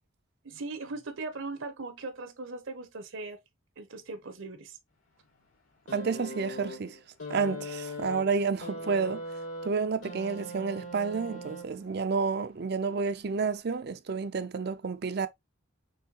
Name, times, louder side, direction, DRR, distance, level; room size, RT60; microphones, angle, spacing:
voice 1, 0.4-3.4 3.8-4.8, right 3 dB, 70° right, 0.9 m, -39 dB
sound 1, 5.9-12.0 13.1-13.2, left 1 dB, 80° left, 2.7 m, -40 dB
voice 2, 5.9-7.0 7.3-9.2 9.6-15.3, right 5 dB, 50° right, 0.4 m, -30 dB
5.6 x 3.2 x 2.8 m
head